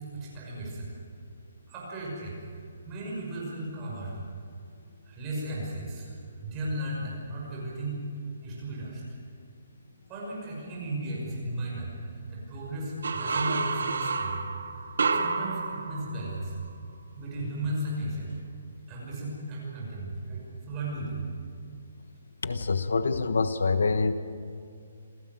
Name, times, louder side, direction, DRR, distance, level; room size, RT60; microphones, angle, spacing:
voice 1, 0.1-0.9 1.7-4.2 5.0-6.1 6.4-8.0 8.4-9.0 10.1-14.4 14.8-16.6 17.2-18.3 18.9-21.3, right 1 dB, 15° right, -5 dB, 6.0 m, -35 dB
sound 1, 13.0-16.6, right 4 dB, 75° right, 2.2 m, -30 dB
voice 2, 22.4-24.2, left 4 dB, 80° left, 11 dB, 1.3 m, -26 dB
27.5 x 17.5 x 7.9 m, 2.3 s
hypercardioid pair, 180°, 0 cm